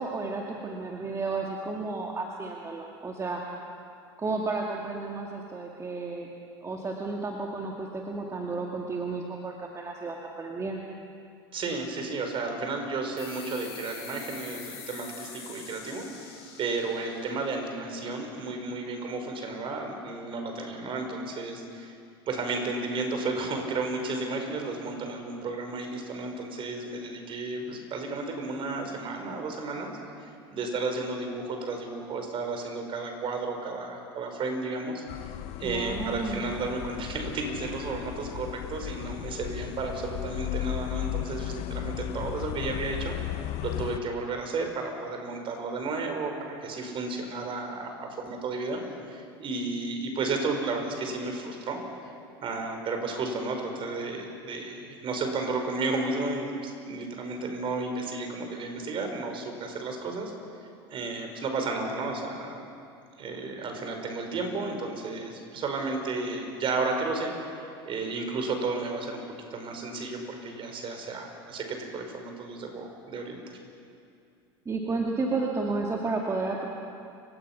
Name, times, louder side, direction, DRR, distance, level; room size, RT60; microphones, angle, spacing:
voice 1, 0.0-3.4 4.2-6.3 6.6-10.9 35.6-36.5 74.7-76.7, right 3 dB, 25° right, -1 dB, 2.3 m, -32 dB
voice 2, 11.5-16.3 16.6-21.9 22.3-29.9 30.5-35.3 35.6-43.2 43.6-51.8 52.4-60.3 60.9-62.6 63.2-69.2 69.5-73.6, right 3 dB, 40° right, 4 dB, 5.0 m, -33 dB
sound 1, 13.2-18.3, left 6 dB, 90° left, 7.4 m, -45 dB
sound 2, 35.1-44.0, left 14 dB, 55° left, 0.9 m, -35 dB
29.5 x 17.0 x 6.0 m, 2.4 s
hypercardioid pair, 85°, 13 cm